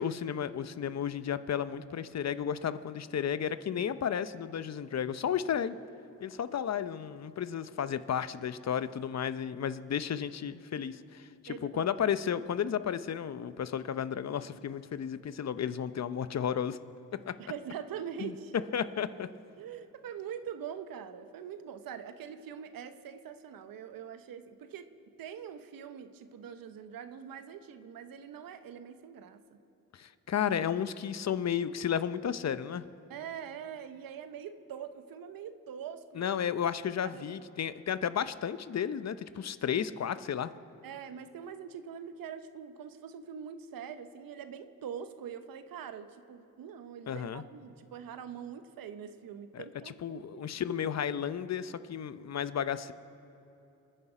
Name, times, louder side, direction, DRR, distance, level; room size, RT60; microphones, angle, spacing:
voice 1, 0.0-5.8 6.2-16.8 17.3-17.4 18.2-18.3 18.7-19.3 29.9-32.8 36.1-40.5 47.1-47.4 49.5-52.9, left 8 dB, 50° left, 13 dB, 0.7 m, -33 dB
voice 2, 11.5-11.9 17.4-18.5 19.6-24.9 25.2-29.6 33.1-36.4 37.0-37.5 40.8-50.5, right 8 dB, 85° right, 11 dB, 0.9 m, -43 dB
25.5 x 9.9 x 5.0 m, 2.9 s
cardioid pair, 60°, 34 cm